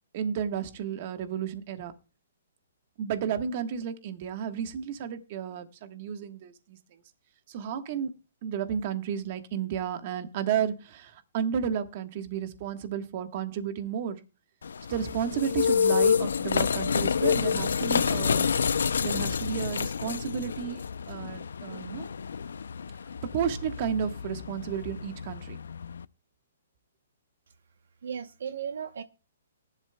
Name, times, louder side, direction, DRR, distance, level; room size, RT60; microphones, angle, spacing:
voice 1, 0.1-1.9 3.0-6.8 7.5-8.1 8.4-14.2 14.9-18.5 19.0-22.1 23.3-25.6, right 8 dB, 30° right, 1.3 m, -32 dB
sound 1, 14.6-26.0, left 6 dB, 85° left, 0.5 m, -28 dB
voice 2, 28.0-29.0, right 7 dB, 65° right, 0.8 m, -35 dB
18.5 x 11.0 x 2.2 m
hypercardioid pair, 175°, 0 cm